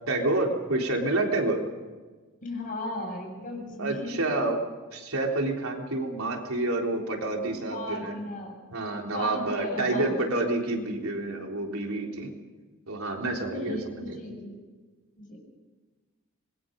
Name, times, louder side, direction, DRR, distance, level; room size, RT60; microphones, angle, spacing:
voice 1, 0.1-1.6 3.8-4.6 4.9-8.2 8.7-12.3 12.9-14.2, right 2 dB, 90° right, 1 dB, 3.8 m, -28 dB
voice 2, 2.4-4.4 7.5-8.5 9.1-10.1 13.4-14.6 15.2-15.4, left 1 dB, 40° left, 1 dB, 7.3 m, -36 dB
26.0 x 22.0 x 5.4 m, 1.3 s
head